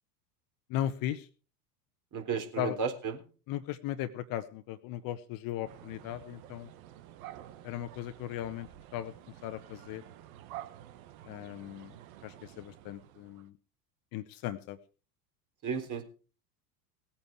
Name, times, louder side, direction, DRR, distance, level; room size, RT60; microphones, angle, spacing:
voice 1, 0.7-1.2 2.6-2.7 3.5-6.7 7.6-8.7 8.9-9.1 9.4-10.0 11.3-11.9 12.2-13.5 14.1-14.8, left 12 dB, 45° left, 11 dB, 1.2 m, -37 dB
voice 2, 2.1-3.2 15.6-16.0, right 6 dB, 40° right, 4 dB, 3.8 m, -33 dB
sound 1, 5.7-13.5, right 13 dB, 60° right, 1.3 m, -50 dB
18.0 x 8.9 x 4.7 m, 0.37 s
hypercardioid pair, 85°, 48 cm